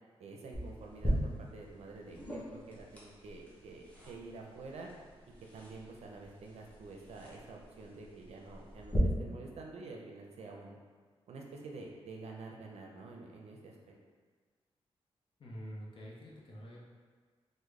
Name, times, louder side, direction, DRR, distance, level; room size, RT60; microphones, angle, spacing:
voice 1, 0.2-4.9 5.5-10.8 11.3-14.0, right 3 dB, 75° right, 0 dB, 0.5 m, -48 dB
sound 1, 0.5-9.0, equal, 15° left, 0.8 m, -42 dB
voice 2, 15.4-16.8, equal, 55° left, -4 dB, 0.7 m, -47 dB
3.6 x 2.1 x 3.2 m, 1.5 s
wide cardioid pair, 140°, 11 cm